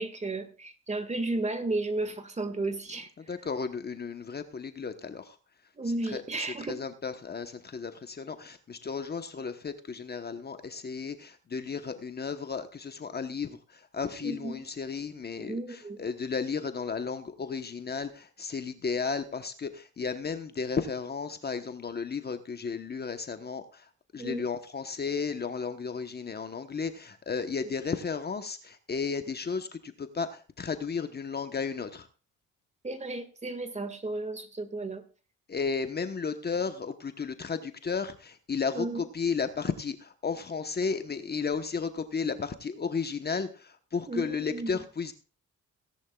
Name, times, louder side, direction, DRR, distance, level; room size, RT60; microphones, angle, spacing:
voice 1, 0.0-3.1 5.8-6.8 14.2-14.6 15.4-16.0 24.2-24.4 32.8-35.0 38.7-39.1 44.1-44.7, right 2 dB, 25° right, 9 dB, 1.8 m, -33 dB
voice 2, 3.3-5.4 6.1-15.6 16.0-23.9 24.1-32.1 35.5-45.1, left 5 dB, 35° left, 8 dB, 1.1 m, -34 dB
17.5 x 10.5 x 2.4 m, 0.36 s
cardioid pair, 90°, 30 cm